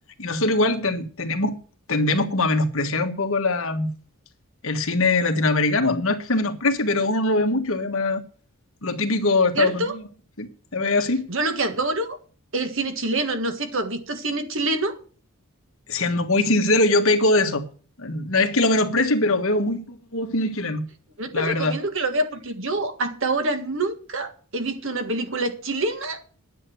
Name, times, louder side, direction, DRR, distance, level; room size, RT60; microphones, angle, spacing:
voice 1, 0.2-1.6 1.9-3.9 4.6-8.2 8.8-10.0 10.4-11.3 15.9-17.6 18.0-20.8 21.3-21.7, left 2 dB, 65° left, 1.5 m, -22 dB
voice 2, 9.5-9.9 11.3-12.2 12.5-15.0 21.2-26.2, right 2 dB, 60° right, 1.7 m, -26 dB
10.5 x 8.1 x 7.7 m
head